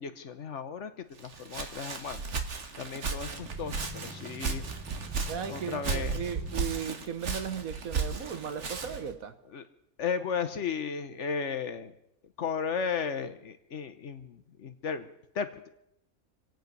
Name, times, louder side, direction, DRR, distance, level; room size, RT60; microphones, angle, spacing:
voice 1, 0.0-2.2 2.8-4.6 5.5-6.3 9.5-9.6 10.0-11.9 12.4-15.7, left 6 dB, 60° left, 10 dB, 1.2 m, -35 dB
Walk footsteps, 1.2-9.1, right 5 dB, 55° right, 1.6 m, -35 dB
sound 1, 3.2-6.9, right 1 dB, 15° right, 1.1 m, -47 dB
voice 2, 5.3-9.3, right 8 dB, 80° right, 10 dB, 1.5 m, -36 dB
26.0 x 9.1 x 5.3 m, 0.77 s
omnidirectional pair, 1.5 m